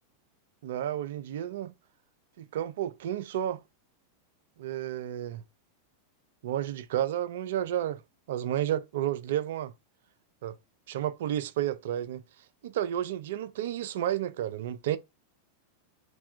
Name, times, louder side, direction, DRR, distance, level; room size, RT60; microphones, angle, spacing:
voice 1, 0.6-1.7 2.4-3.6 4.6-5.4 6.4-8.0 8.3-9.7 10.4-10.6 10.9-12.2 12.6-15.0, right 11 dB, 55° right, 0.3 m, -31 dB
3.2 x 2.6 x 2.5 m
figure-of-eight pair, 90°, 0 cm